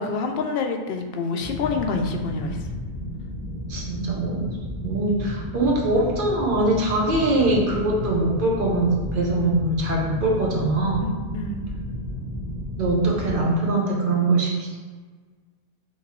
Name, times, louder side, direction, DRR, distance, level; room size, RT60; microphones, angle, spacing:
voice 1, 0.0-2.6 11.0-11.6, left 4 dB, 70° left, 4 dB, 0.8 m, -27 dB
sound 1, 1.4-13.5, left 1 dB, 20° right, 1.2 m, -33 dB
voice 2, 3.7-4.5 4.8-11.1 12.8-14.7, right 2 dB, 60° right, -2 dB, 1.0 m, -22 dB
5.5 x 3.0 x 3.0 m, 1.5 s
omnidirectional pair, 1.0 m